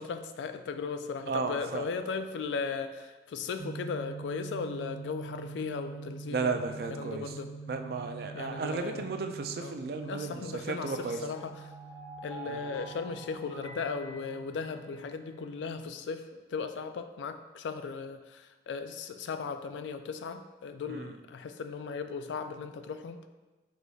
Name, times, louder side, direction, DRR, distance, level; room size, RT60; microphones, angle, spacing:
voice 1, 0.0-6.6 6.9-7.5 8.3-9.1 9.6-9.7 10.1-11.5 12.2-23.2, left 5 dB, 85° left, 9 dB, 0.3 m, -37 dB
voice 2, 1.3-1.9 6.3-7.4 7.7-11.2 12.4-12.6 20.9-21.2, right 4 dB, 55° right, 6 dB, 0.3 m, -34 dB
sound 1, 3.6-15.8, right 4 dB, 80° right, 1.0 m, -45 dB
sound 2, 11.3-15.3, right 2 dB, 20° left, 0.5 m, -47 dB
4.8 x 3.9 x 2.3 m, 1.2 s
head